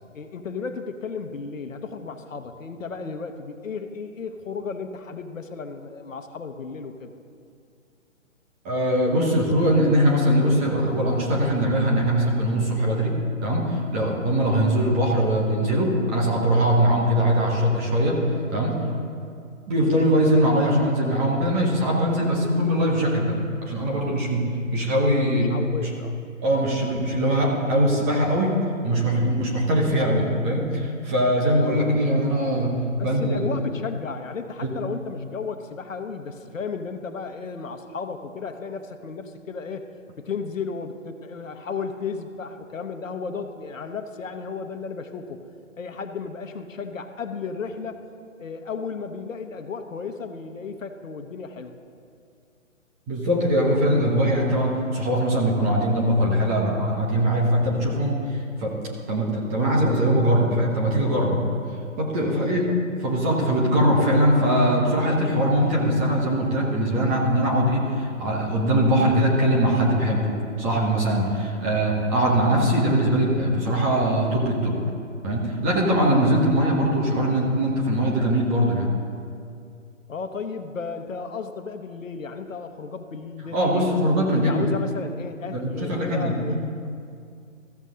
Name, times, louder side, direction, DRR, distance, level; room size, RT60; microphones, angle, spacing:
voice 1, 0.1-7.2 25.5-26.2 33.0-39.9 40.2-45.4 45.8-48.0 48.4-51.8 62.2-62.8 80.1-83.9 84.3-86.5, left 5 dB, 75° left, 7 dB, 1.0 m, -34 dB
voice 2, 8.6-18.2 18.5-18.8 19.7-25.5 25.8-25.9 26.4-33.5 34.6-34.7 53.1-58.8 59.1-61.4 62.0-62.6 63.0-74.8 75.2-78.9 83.5-84.6 85.5-86.6, equal, 10° right, -3 dB, 0.6 m, -21 dB
15.0 x 6.7 x 3.7 m, 2.4 s
figure-of-eight pair, 145°, 39 cm